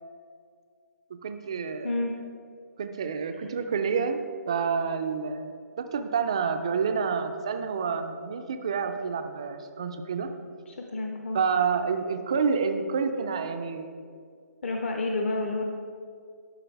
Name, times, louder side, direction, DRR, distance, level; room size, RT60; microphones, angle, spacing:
voice 1, 1.2-1.9 2.8-4.2 4.5-10.3 11.3-13.9, right 5 dB, 20° right, 7 dB, 0.3 m, -28 dB
voice 2, 1.8-2.2 3.4-3.5 10.7-11.4 14.6-15.6, left 2 dB, 45° left, 2 dB, 0.8 m, -30 dB
12.0 x 5.5 x 4.5 m, 2.2 s
hypercardioid pair, 175°, 9 cm